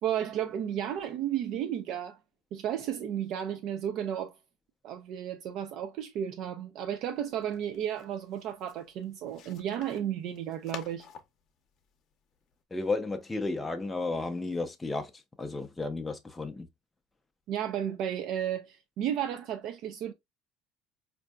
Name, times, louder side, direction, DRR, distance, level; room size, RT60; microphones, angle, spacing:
voice 1, 0.0-2.2 2.5-4.3 4.8-11.1 17.5-20.1, right 10 dB, 60° right, 0.5 m, -33 dB
sound 1, 7.1-12.6, left 8 dB, 50° left, 0.7 m, -51 dB
voice 2, 12.7-16.7, left 3 dB, 10° left, 0.5 m, -33 dB
4.3 x 2.6 x 2.2 m
cardioid pair, 120°, 0 cm